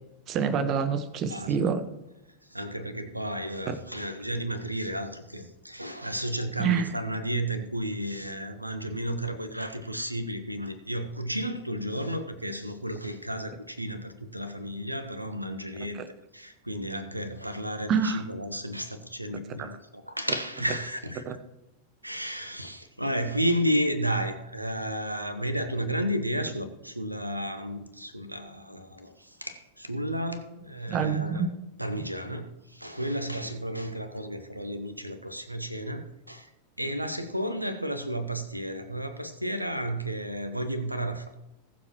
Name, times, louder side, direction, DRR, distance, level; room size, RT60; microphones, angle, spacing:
voice 1, 0.3-1.8 3.7-3.8 6.6-6.9 17.9-18.2 19.6-19.7 21.3-21.4 30.9-31.5, right 6 dB, 35° right, 11 dB, 1.2 m, -26 dB
voice 2, 2.5-16.0 16.3-21.2 22.0-31.5 31.8-36.5 36.8-41.4, equal, 85° right, 9 dB, 1.2 m, -32 dB
20.0 x 7.4 x 3.1 m, 0.92 s
figure-of-eight pair, 90°, 0 cm